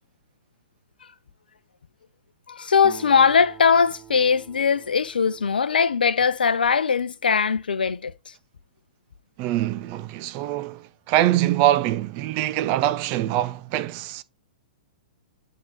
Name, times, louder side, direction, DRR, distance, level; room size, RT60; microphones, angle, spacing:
voice 1, 2.5-8.1, left 6 dB, 85° left, 0.6 m, -20 dB
Acoustic guitar, 2.8-6.6, right 8 dB, 20° right, 1.1 m, -47 dB
voice 2, 9.4-14.2, right 13 dB, 40° right, 0.6 m, -24 dB
9.3 x 3.8 x 3.4 m
hypercardioid pair, 115°, 5 cm